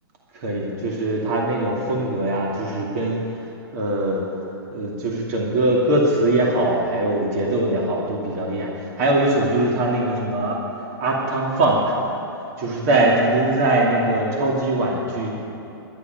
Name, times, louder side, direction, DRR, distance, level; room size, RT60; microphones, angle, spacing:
voice 1, 0.3-3.2 3.7-4.2 4.7-10.6 11.0-12.0 12.6-15.3, right 1 dB, 40° right, -2 dB, 2.4 m, -21 dB
13.0 x 11.5 x 9.2 m, 2.8 s
hypercardioid pair, 160°, 13 cm